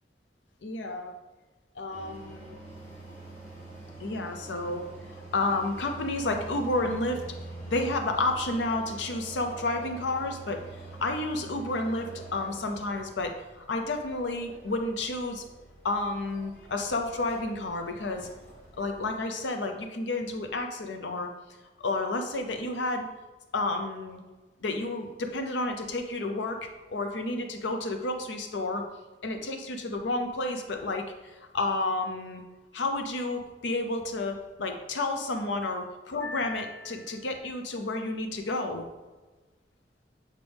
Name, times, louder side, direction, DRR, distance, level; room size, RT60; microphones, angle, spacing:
voice 1, 0.6-1.1 1.8-2.6 4.0-7.4 7.7-15.4 15.8-18.3 18.8-21.3 21.8-23.1 23.5-24.2 24.6-28.8 29.2-32.4 32.7-38.8, left 2 dB, 80° left, 5 dB, 0.6 m, -31 dB
sound 1, 1.9-19.1, right 2 dB, 45° left, 1.7 m, -45 dB
7.8 x 4.0 x 3.5 m, 1.2 s
head